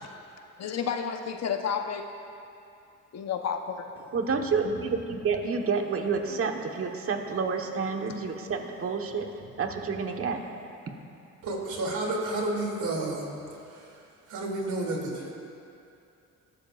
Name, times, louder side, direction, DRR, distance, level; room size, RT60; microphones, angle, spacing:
voice 1, 0.6-2.1 3.1-3.9, left 7 dB, 60° left, 5 dB, 1.1 m, -31 dB
voice 2, 4.1-10.6, right 5 dB, 50° right, 3 dB, 1.4 m, -29 dB
voice 3, 11.4-13.3 13.7-14.0 14.3-15.3, right 2 dB, 75° right, -1 dB, 3.0 m, -31 dB
21.0 x 13.5 x 2.6 m, 2.6 s
cardioid pair, 90°, 30 cm